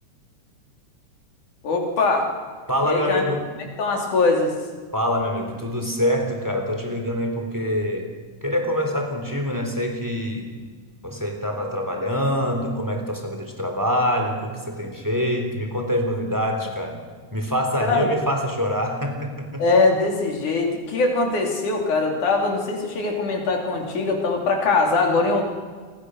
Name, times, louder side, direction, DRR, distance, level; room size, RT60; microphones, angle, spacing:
voice 1, 1.6-2.3 2.9-3.2 3.8-4.5 17.9-18.1 19.6-25.4, left 3 dB, 80° left, 1 dB, 4.8 m, -21 dB
voice 2, 2.7-3.4 4.9-8.1 8.4-10.5 11.0-17.0 17.3-19.6, equal, 5° right, 3 dB, 3.3 m, -25 dB
28.5 x 22.0 x 6.5 m, 1.5 s
omnidirectional pair, 3.4 m